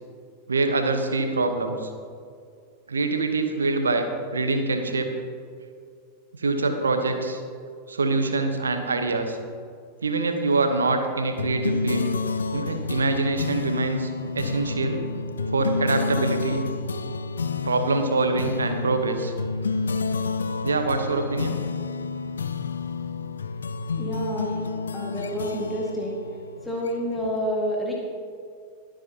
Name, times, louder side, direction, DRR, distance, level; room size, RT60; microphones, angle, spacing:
voice 1, 0.5-1.9 2.9-4.0 4.3-5.1 6.4-7.4 7.9-9.4 10.0-12.1 12.5-15.0 15.5-16.6 17.6-19.3 20.6-21.6, right 3 dB, 75° right, 6 dB, 1.1 m, -24 dB
sound 1, 11.4-27.3, left 4 dB, 70° left, 0.5 m, -30 dB
voice 2, 24.0-24.6 24.9-26.2 26.6-27.9, equal, 5° left, -4 dB, 1.9 m, -28 dB
21.5 x 7.8 x 2.9 m, 2.2 s
figure-of-eight pair, 90°, 0 cm